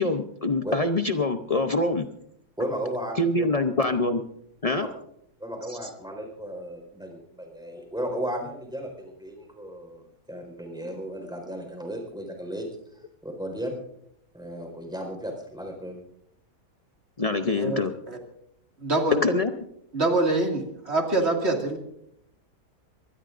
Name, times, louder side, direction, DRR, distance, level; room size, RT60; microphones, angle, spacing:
voice 1, 0.0-2.1 3.2-4.2 4.6-4.9 17.2-17.9 19.1-19.5, left 2 dB, 50° left, 7 dB, 0.4 m, -24 dB
voice 2, 2.6-3.5 4.7-4.9 5.4-10.0 10.3-12.7 12.9-13.7 14.3-16.0, equal, ahead, 2 dB, 4.5 m, -35 dB
voice 3, 17.5-18.2 18.8-19.2 19.9-21.8, right 2 dB, 40° right, 2 dB, 2.5 m, -25 dB
23.5 x 20.0 x 2.6 m, 0.73 s
omnidirectional pair, 1.7 m